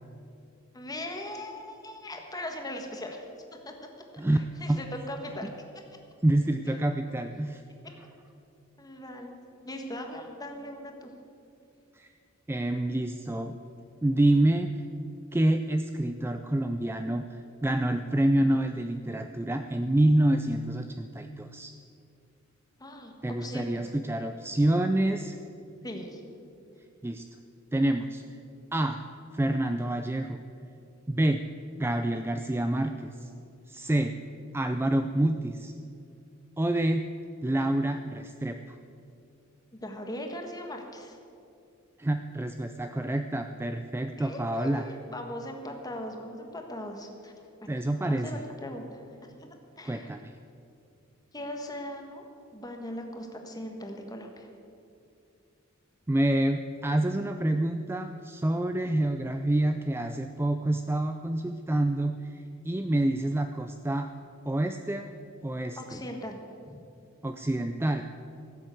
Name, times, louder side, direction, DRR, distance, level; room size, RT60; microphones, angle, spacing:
voice 1, 0.7-3.2 3.6-3.7 4.6-5.5 8.8-9.4 9.6-11.1 22.8-23.1 23.4-23.9 25.8-26.2 39.7-41.2 44.2-47.3 47.6-47.7 48.0-49.0 49.4-50.1 51.3-52.2 52.5-54.5 65.8-66.4 66.7-66.8, left 1 dB, 20° left, 3 dB, 1.5 m, -39 dB
voice 2, 4.2-4.8 6.2-7.6 11.9-12.1 12.5-13.6 14.0-14.7 15.3-21.7 23.2-25.4 27.0-27.2 27.7-28.2 28.7-29.0 29.3-30.4 31.1-31.5 31.8-33.3 33.7-34.2 34.5-35.7 36.6-37.1 37.4-38.8 42.0-44.9 47.7-48.4 49.8-50.3 56.1-64.1 64.4-65.1 65.4-65.8 67.2-68.0, right 1 dB, 10° right, 7 dB, 0.4 m, -27 dB
16.0 x 7.7 x 7.8 m, 2.5 s
head